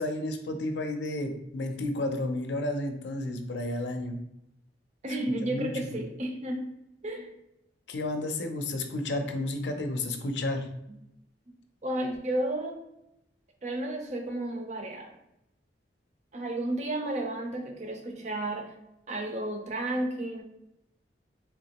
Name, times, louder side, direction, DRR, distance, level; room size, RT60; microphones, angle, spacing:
voice 1, 0.0-4.2 5.4-6.0 7.9-10.7, left 1 dB, 80° left, 5 dB, 0.5 m, -32 dB
voice 2, 5.0-6.7 7.0-7.3 11.8-12.8 13.6-15.1 16.3-18.7 19.1-20.4, right 1 dB, 40° right, 3 dB, 0.5 m, -32 dB
3.4 x 2.9 x 2.8 m, 0.83 s
head